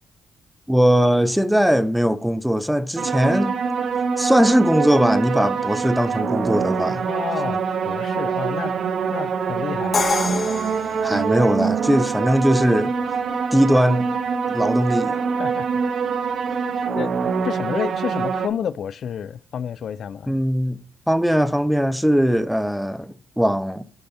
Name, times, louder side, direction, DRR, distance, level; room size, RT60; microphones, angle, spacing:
voice 1, 0.7-3.5 4.2-7.1 11.0-12.9 13.5-14.1 14.5-15.2 20.3-20.8 21.1-23.8, equal, ahead, 0.5 m, -20 dB
sound 1, 3.0-18.5, right 5 dB, 55° right, 0.7 m, -24 dB
voice 2, 7.0-7.6 7.8-8.8 9.1-10.0 15.4-15.8 16.9-17.1 17.4-20.3, left 8 dB, 60° left, 0.3 m, -29 dB
Crash cymbal, 9.9-11.9, left 4 dB, 35° left, 0.7 m, -26 dB
6.8 x 5.4 x 4.3 m
cardioid pair, 90°, 0 cm